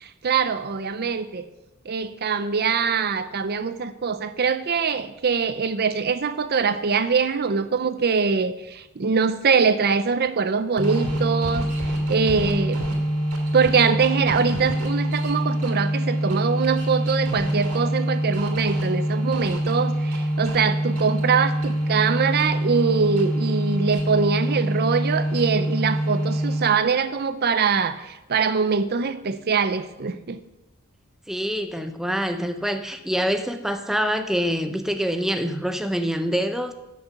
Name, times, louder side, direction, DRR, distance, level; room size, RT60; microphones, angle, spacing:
voice 1, 0.0-1.4 1.9-11.7 12.1-12.8 13.5-30.4, right 5 dB, 45° right, 12 dB, 0.6 m, -23 dB
sound 1, 10.8-26.9, right 1 dB, 85° right, 2.8 m, -25 dB
voice 2, 31.3-36.7, equal, ahead, 7 dB, 0.6 m, -25 dB
12.5 x 6.7 x 7.1 m, 1.0 s
head